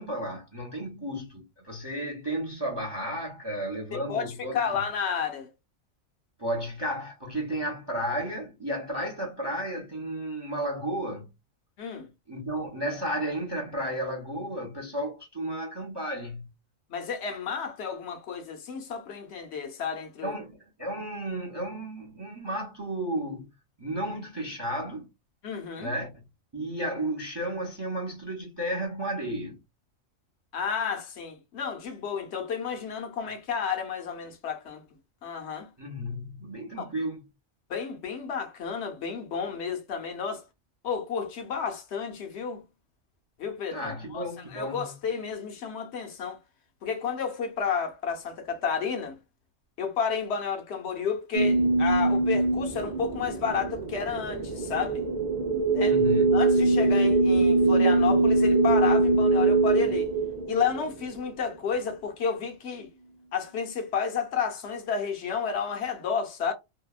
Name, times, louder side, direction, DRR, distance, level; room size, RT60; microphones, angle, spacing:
voice 1, 0.0-4.6 6.4-11.3 12.3-16.5 20.2-23.5 23.8-25.1 25.8-26.2 26.5-29.6 35.8-37.2 43.7-44.8 55.9-56.4, right 1 dB, 25° right, 0.7 m, -33 dB
voice 2, 3.9-5.5 8.9-9.1 11.8-12.1 16.9-20.4 25.4-25.9 30.5-34.8 35.2-35.7 36.7-36.9 37.7-40.4 40.8-42.6 43.4-46.4 46.8-49.2 49.8-55.0 55.7-56.0 56.3-60.1 60.5-62.9 63.3-66.5, left 6 dB, 60° left, 0.9 m, -31 dB
sound 1, 51.3-61.1, right 3 dB, 70° right, 0.4 m, -23 dB
2.8 x 2.2 x 2.3 m
omnidirectional pair, 1.4 m